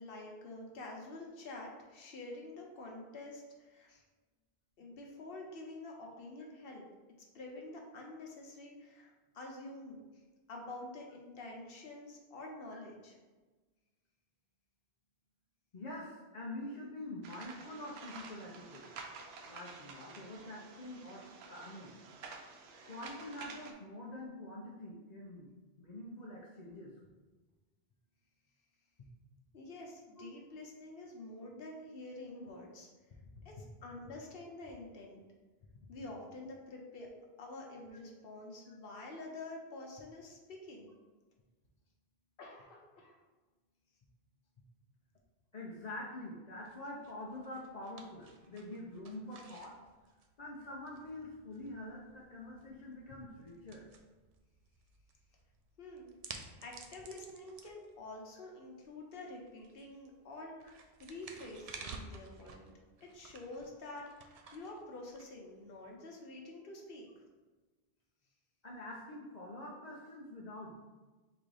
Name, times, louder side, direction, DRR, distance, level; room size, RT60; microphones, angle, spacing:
voice 1, 0.0-4.0 4.8-6.8 7.3-10.0 10.5-13.2 29.5-32.9 33.4-35.2 35.9-37.1 37.4-40.9 42.4-43.2 55.8-56.1 56.6-62.7 63.0-67.2, left 2 dB, 65° left, 0 dB, 1.0 m, -48 dB
voice 2, 15.7-18.9 19.4-21.9 22.8-25.5 25.8-26.9 29.0-29.1 32.4-32.5 33.2-33.3 38.7-38.8 45.5-49.8 50.4-53.9 60.6-60.7 68.6-70.7, left 1 dB, 50° left, -5 dB, 0.6 m, -46 dB
sound 1, 17.2-23.7, right 4 dB, 85° right, 0.9 m, -50 dB
sound 2, 46.6-65.9, right 4 dB, 55° right, 0.4 m, -54 dB
4.0 x 2.6 x 4.7 m, 1.3 s
omnidirectional pair, 1.1 m